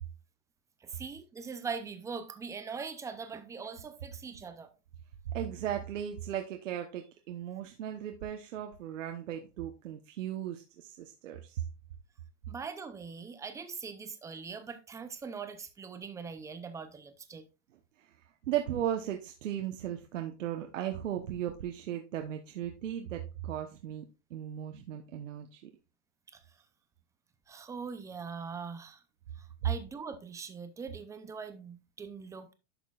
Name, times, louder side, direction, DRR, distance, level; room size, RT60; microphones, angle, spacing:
voice 1, 0.8-4.7 12.5-17.5 26.3-26.4 27.5-29.0 29.4-32.5, right 5 dB, 10° right, 0.5 m, -42 dB
voice 2, 5.3-11.6 18.0-18.2 18.4-24.0 24.3-25.7, right 10 dB, 90° right, 1.1 m, -36 dB
11.0 x 6.0 x 2.4 m
supercardioid pair, 150°, 37 cm